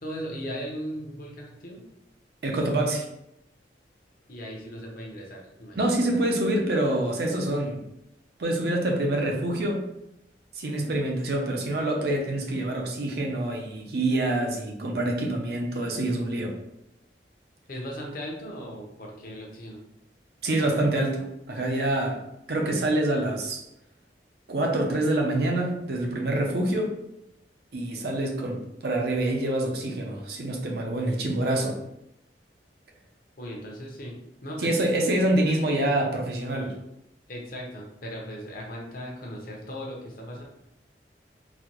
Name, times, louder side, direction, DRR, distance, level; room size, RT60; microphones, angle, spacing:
voice 1, 0.0-1.8 4.3-6.2 17.7-19.8 33.4-35.9 37.3-40.4, equal, 50° left, -1 dB, 0.7 m, -38 dB
voice 2, 2.4-3.1 5.8-7.8 8.4-9.8 10.5-16.5 20.4-22.2 22.5-23.6 24.5-26.9 27.7-31.8 34.6-36.7, right 1 dB, 60° right, 1 dB, 0.6 m, -26 dB
4.1 x 2.2 x 2.9 m, 0.82 s
head